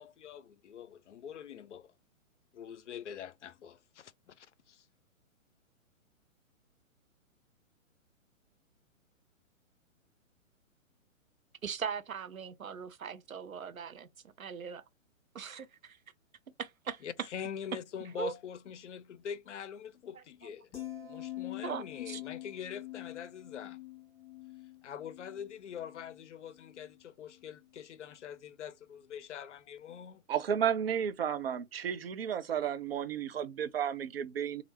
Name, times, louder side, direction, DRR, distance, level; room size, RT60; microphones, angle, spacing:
voice 1, 0.0-1.9 2.5-4.9 17.0-20.7 21.0-23.8 24.8-30.2, left 8 dB, 60° left, 0.5 m, -44 dB
voice 2, 11.6-14.1 14.4-14.8 15.3-16.0 16.6-17.0 18.2-18.3 21.6-22.2, right 6 dB, 90° right, 0.6 m, -40 dB
sound 1, 20.7-27.0 27.3-27.7, left 15 dB, 25° left, 1.5 m, -46 dB
voice 3, 30.3-34.6, right 8 dB, 50° right, 0.4 m, -32 dB
3.1 x 2.5 x 2.8 m
figure-of-eight pair, 130°, 41 cm